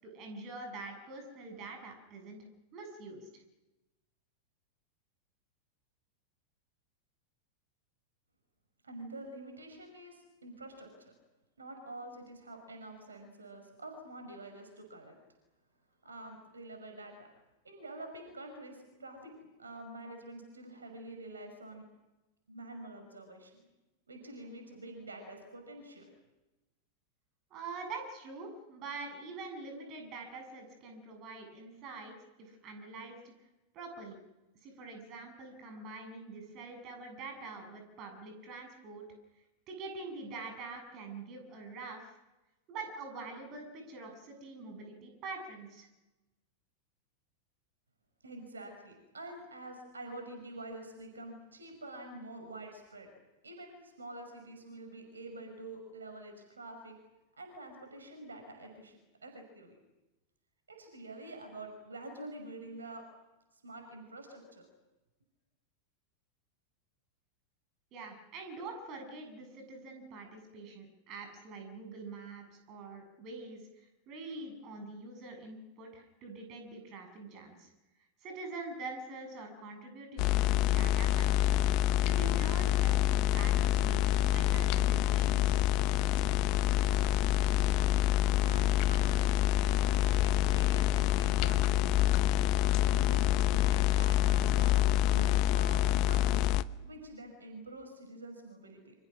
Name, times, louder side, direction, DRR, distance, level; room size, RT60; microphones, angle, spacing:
voice 1, 0.0-2.4 2.7-3.3 27.5-33.3 33.7-34.2 34.6-39.1 39.7-42.2 42.7-45.9 67.9-77.7 78.2-81.6 82.0-85.6, right 3 dB, 35° right, 5 dB, 7.8 m, -45 dB
voice 2, 8.8-11.1 11.6-15.2 16.0-17.3 17.6-19.3 19.6-21.9 22.5-23.5 24.1-26.0 48.2-53.1 53.4-56.9 57.4-59.7 60.7-63.0 63.5-64.7 88.3-89.9 90.2-91.9 92.8-96.4 96.8-98.9, right 2 dB, 75° right, 5 dB, 5.6 m, -47 dB
sound 1, 80.2-96.6, left 13 dB, 40° left, 0.9 m, -27 dB
29.0 x 26.5 x 6.3 m, 1.0 s
figure-of-eight pair, 90°, 0 cm